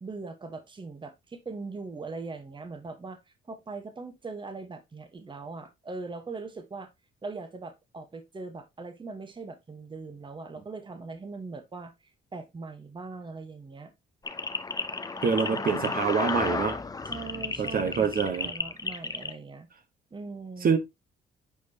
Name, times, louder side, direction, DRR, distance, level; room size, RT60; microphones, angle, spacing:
voice 1, 0.0-3.2 3.5-6.9 7.2-11.9 12.3-13.9 15.4-16.1 17.0-19.7 20.1-20.8, right 3 dB, 25° right, 1.1 m, -40 dB
sound 1, 14.3-19.3, left 3 dB, 20° left, 0.6 m, -33 dB
voice 2, 15.2-16.8 17.6-18.5 20.6-20.8, right 6 dB, 45° right, 1.1 m, -26 dB
8.1 x 4.5 x 2.7 m
cardioid pair, 90°, 20 cm